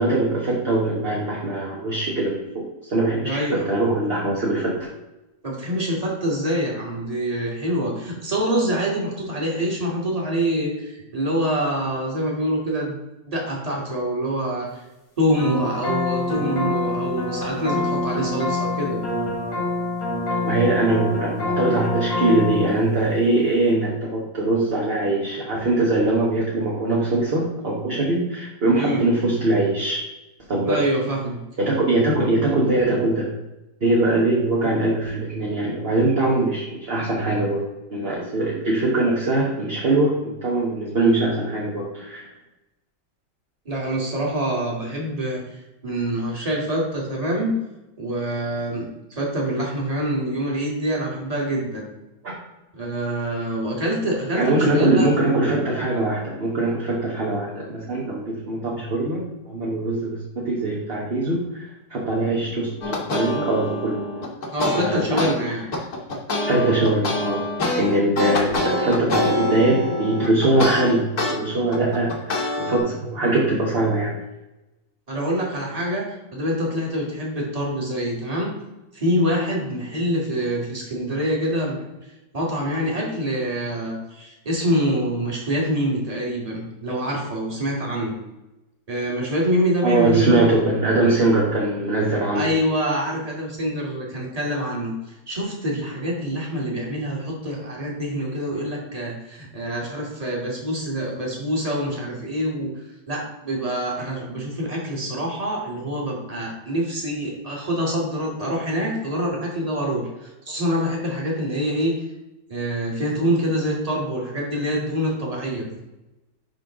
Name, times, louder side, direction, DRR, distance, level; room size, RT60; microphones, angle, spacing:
voice 1, 0.0-4.9 20.4-30.0 30.5-30.8 31.6-33.3 33.8-37.6 37.9-42.3 52.2-52.3 54.3-64.3 64.6-65.3 66.4-74.1 89.8-92.5 104.0-104.1, right 2 dB, 35° right, -4 dB, 1.4 m, -22 dB
voice 2, 3.2-3.7 5.4-13.0 13.3-14.8 15.2-19.0 28.8-29.0 30.6-31.4 43.7-47.5 48.0-51.9 52.7-55.1 64.5-65.7 75.1-78.5 78.9-81.8 82.3-88.2 88.9-90.5 92.3-94.9 95.3-102.7 103.1-111.9 112.5-115.7, equal, 20° right, -3 dB, 2.0 m, -25 dB
sound 1, 15.4-22.7, left 2 dB, 75° left, 2.7 m, -26 dB
sound 2, 62.8-65.3 65.7-71.3 71.7-72.8, left 2 dB, 60° left, 1.9 m, -25 dB
11.0 x 3.7 x 3.7 m, 0.98 s
omnidirectional pair, 1.9 m